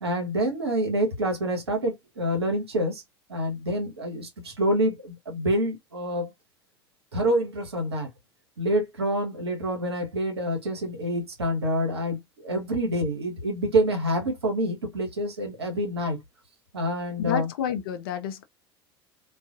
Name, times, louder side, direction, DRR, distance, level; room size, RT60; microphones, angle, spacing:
voice 1, 0.0-3.0 3.3-6.3 7.1-8.1 8.6-16.2 16.7-17.5, equal, 80° right, 0.9 m, -27 dB
voice 2, 17.2-18.4, left 9 dB, 60° left, 0.5 m, -29 dB
2.4 x 2.2 x 2.5 m
figure-of-eight pair, 75°, 13 cm